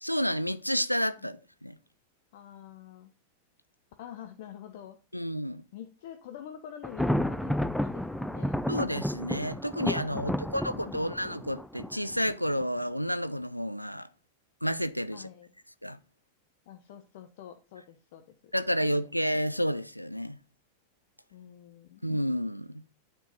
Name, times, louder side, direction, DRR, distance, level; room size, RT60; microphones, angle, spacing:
voice 1, 0.0-1.8 5.1-5.6 8.7-14.1 14.6-15.3 15.8-16.0 18.5-20.4 22.0-22.8, equal, 90° left, 0.3 m, -30 dB
voice 2, 2.3-3.1 4.0-5.0 5.4-8.6 10.2-11.3 15.1-15.5 16.7-18.5 21.3-22.0, left 10 dB, 50° left, 0.6 m, -47 dB
Thunder, 6.8-12.6, left 1 dB, ahead, 0.3 m, -32 dB
9.3 x 3.7 x 4.2 m
figure-of-eight pair, 90°, 0 cm